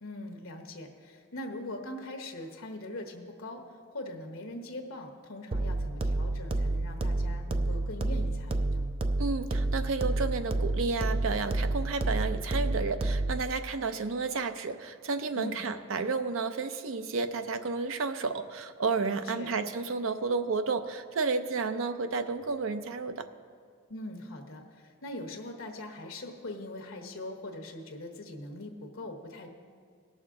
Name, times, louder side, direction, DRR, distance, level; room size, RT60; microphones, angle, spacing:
voice 1, 0.0-3.6 3.9-8.9 15.3-15.6 19.1-19.5 23.9-29.5, left 1 dB, 85° left, 4 dB, 1.1 m, -41 dB
sound 1, 5.5-13.5, right 2 dB, 25° right, 0.3 m, -30 dB
voice 2, 9.2-23.3, right 4 dB, 80° right, 9 dB, 0.6 m, -31 dB
18.0 x 6.4 x 3.7 m, 2.1 s
head